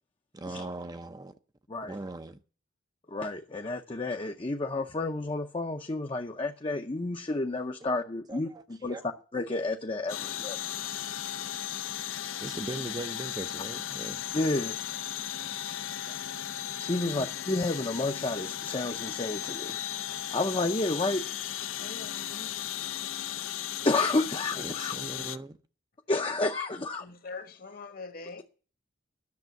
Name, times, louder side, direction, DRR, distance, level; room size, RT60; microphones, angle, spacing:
voice 1, 0.3-1.3 1.8-2.4 8.3-9.1 12.4-14.2 16.1-16.2 17.1-17.3 24.6-25.6, right 2 dB, 20° right, 0.5 m, -39 dB
voice 2, 3.1-8.5 8.8-9.0 9.3-10.6 14.3-14.8 16.8-19.7 20.3-21.3 22.9-23.0 23.8-25.0 26.1-27.1, left 2 dB, 25° left, 0.6 m, -30 dB
sound 1, 10.1-25.4, left 11 dB, 75° left, 0.5 m, -36 dB
voice 3, 21.8-22.5 27.0-28.4, left 4 dB, 45° left, 1.2 m, -43 dB
10.5 x 6.7 x 9.0 m
head